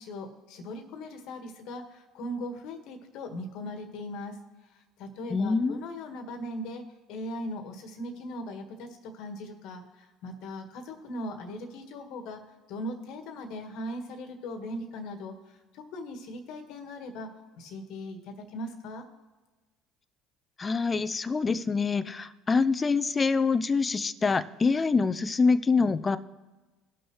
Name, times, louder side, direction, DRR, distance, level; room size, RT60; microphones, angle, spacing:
voice 1, 0.0-4.4 5.0-6.8 7.1-12.4 12.7-15.3 15.7-17.3 17.6-19.0, left 1 dB, 70° left, 5 dB, 1.6 m, -39 dB
voice 2, 5.3-5.8 20.6-26.2, left 4 dB, 25° left, 13 dB, 0.6 m, -25 dB
18.5 x 6.2 x 3.2 m, 1.3 s
supercardioid pair, 80°, 0 cm